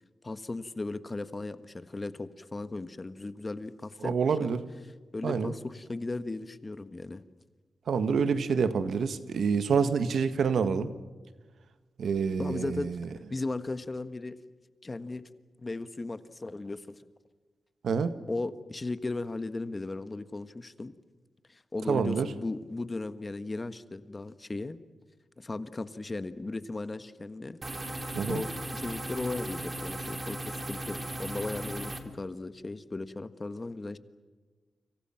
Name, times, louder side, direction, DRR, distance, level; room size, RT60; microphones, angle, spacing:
voice 1, 0.2-4.5 5.1-7.2 12.4-14.3 14.8-15.2 15.6-17.0 18.3-20.9 21.5-24.8 25.4-27.6 28.3-34.0, left 2 dB, 30° left, 12 dB, 1.5 m, -36 dB
voice 2, 4.0-4.6 5.2-5.5 7.9-10.9 12.0-13.1 17.8-18.2 21.9-22.3 28.1-28.4, right 6 dB, 80° right, 11 dB, 1.7 m, -27 dB
sound 1, 27.6-32.0, right 1 dB, 30° right, 3.2 m, -37 dB
30.0 x 26.5 x 5.9 m, 1.3 s
wide cardioid pair, 95°, 0 cm